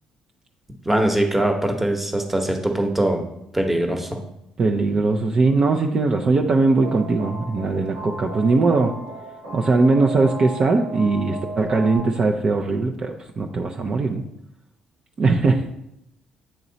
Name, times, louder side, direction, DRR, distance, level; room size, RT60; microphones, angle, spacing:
voice 1, 0.8-3.2 3.5-4.2, right 1 dB, 10° right, 4 dB, 1.0 m, -22 dB
voice 2, 4.6-8.9 9.5-14.2 15.2-15.7, right 3 dB, 45° right, 2 dB, 0.5 m, -20 dB
sound 1, 6.8-12.0, right 2 dB, 90° right, 1.9 m, -35 dB
8.6 x 3.0 x 3.9 m, 0.81 s
supercardioid pair, 80°, 2 cm